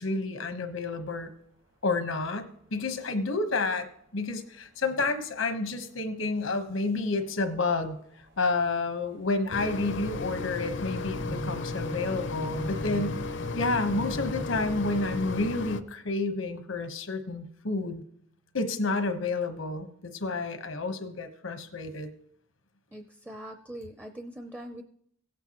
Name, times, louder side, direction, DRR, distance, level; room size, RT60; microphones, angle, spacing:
voice 1, 0.0-1.3 1.8-8.0 8.4-13.2 13.5-18.0 18.5-22.1, left 3 dB, 90° left, 8 dB, 1.1 m, -30 dB
sound 1, 2.1-2.2 2.4-3.1 3.6-3.7 4.3-4.4 5.2-5.6 6.3-6.4 6.7-15.5, equal, 65° right, 1.5 m, -41 dB
Mechanisms, 9.5-15.8, left 4 dB, 65° left, 0.5 m, -35 dB
voice 2, 22.9-24.8, right 1 dB, 10° right, 5 dB, 0.5 m, -42 dB
16.5 x 9.0 x 3.0 m, 0.68 s
head